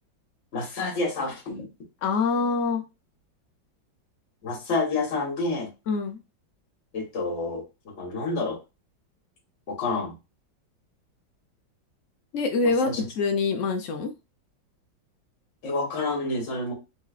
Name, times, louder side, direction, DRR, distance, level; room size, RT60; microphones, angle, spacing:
voice 1, 0.5-1.7 4.4-5.7 6.9-8.6 9.7-10.1 12.6-13.0 15.6-16.7, left 3 dB, 45° left, 1.4 m, -29 dB
voice 2, 2.0-2.8 5.9-6.2 12.3-14.1, left 4 dB, 75° left, 0.7 m, -25 dB
3.8 x 3.0 x 2.4 m
omnidirectional pair, 2.1 m